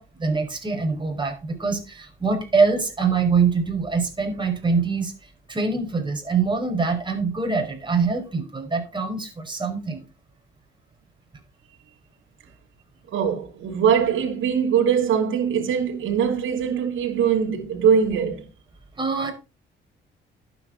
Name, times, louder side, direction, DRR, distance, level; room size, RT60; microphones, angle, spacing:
voice 1, 0.0-5.1 5.5-10.0 19.0-19.3, right 4 dB, 25° right, 5.3 m, -24 dB
voice 2, 13.1-18.5, right 7 dB, 75° right, 3.2 m, -22 dB
12.0 x 8.5 x 4.0 m
cardioid pair, 90°, 20 cm